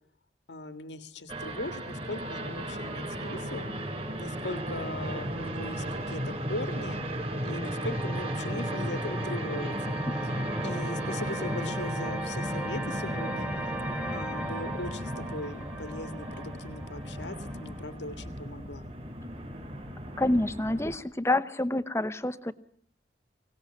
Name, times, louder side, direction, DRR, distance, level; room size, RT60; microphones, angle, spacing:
voice 1, 0.5-3.7 4.2-7.0 7.4-9.9 10.2-10.3 10.6-13.5 14.1-18.9, left 2 dB, 90° left, 10 dB, 1.8 m, -39 dB
sound 1, 1.3-21.0, right 1 dB, 35° right, 4.9 m, -35 dB
sound 2, 6.9-17.9, right 1 dB, 5° right, 1.6 m, -39 dB
voice 2, 20.2-22.5, left 1 dB, 15° left, 13 dB, 1.0 m, -27 dB
25.0 x 18.5 x 9.8 m, 0.63 s
head